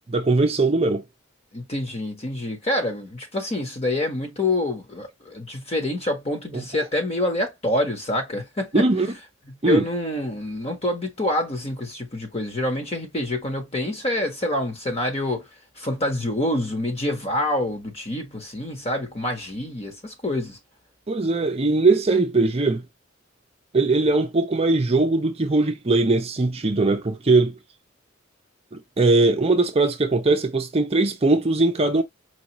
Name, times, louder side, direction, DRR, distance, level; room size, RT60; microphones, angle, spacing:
voice 1, 0.1-1.0 6.5-6.6 8.7-9.1 9.6-9.8 21.1-22.8 23.7-27.6 28.7-32.0, right 3 dB, 30° right, 0.6 m, -20 dB
voice 2, 1.5-8.8 9.5-15.5 15.8-20.6, left 1 dB, 30° left, 1.3 m, -27 dB
4.6 x 2.6 x 3.0 m
head